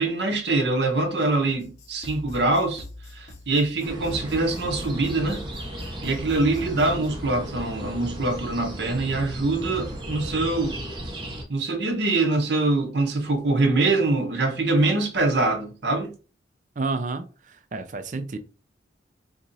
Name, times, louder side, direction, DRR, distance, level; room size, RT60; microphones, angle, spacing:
voice 1, 0.0-2.8 3.1-5.4 6.0-10.8 11.5-16.1, right 2 dB, 70° right, 0.8 m, -24 dB
sound 1, 1.6-7.1, left 2 dB, 40° left, 0.7 m, -43 dB
sound 2, 3.8-11.4, equal, 25° right, 0.8 m, -35 dB
voice 2, 16.8-18.4, right 3 dB, 45° right, 0.4 m, -30 dB
3.0 x 2.5 x 3.9 m
head